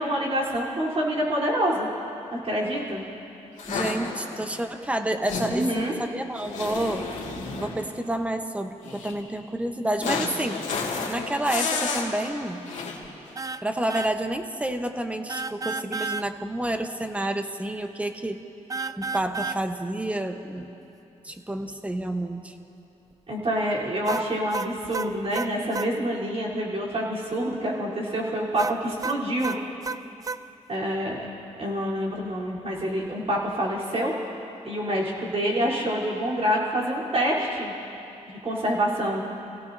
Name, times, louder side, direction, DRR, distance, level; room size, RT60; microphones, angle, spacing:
voice 1, 0.0-1.9 2.3-3.0 5.5-5.9 23.3-29.5 30.7-31.2 31.6-34.1 34.6-37.7 38.3-39.2, equal, 50° right, -5 dB, 3.9 m, -27 dB
sound 1, 3.6-4.4 5.2-5.8 6.3-7.8 8.8-9.1 10.0-12.1 12.7-13.0, left 4 dB, 85° left, 2.3 m, -31 dB
voice 2, 3.7-7.1 7.6-10.6 11.1-12.6 13.6-18.4 19.0-20.7 21.2-22.5, right 1 dB, 10° right, 6 dB, 1.1 m, -29 dB
sound 2, 13.4-13.6 13.9-14.1 15.3-16.3 18.7-19.6 24.1-25.9 28.6-30.4, right 4 dB, 25° right, 0.4 m, -31 dB
28.5 x 17.0 x 2.8 m, 2.8 s
cardioid pair, 80°, 13 cm